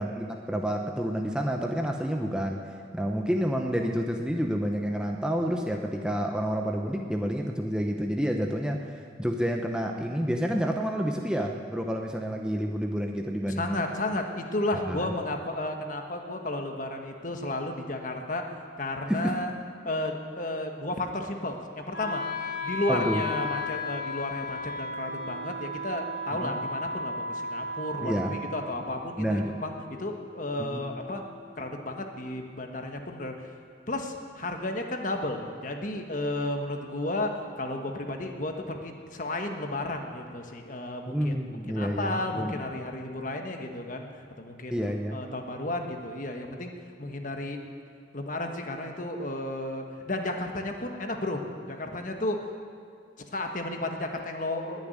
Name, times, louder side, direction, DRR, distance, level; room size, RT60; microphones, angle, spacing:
voice 1, 0.0-2.6 2.9-13.8 14.7-15.1 19.1-19.3 22.9-23.2 26.4-26.6 28.0-28.4 29.2-29.5 30.6-30.9 41.1-42.5 44.7-45.2, equal, 5° right, 2 dB, 0.8 m, -29 dB
voice 2, 13.5-18.4 18.8-19.5 19.8-22.2 22.6-31.2 31.5-33.5 33.9-41.4 41.7-44.8 45.1-46.7 47.0-47.6 48.1-52.4 53.3-54.9, left 2 dB, 45° left, 4 dB, 1.4 m, -33 dB
Wind instrument woodwind instrument, 21.9-31.9, left 2 dB, 70° left, 3.6 m, -36 dB
20.5 x 7.2 x 9.6 m, 2.2 s
head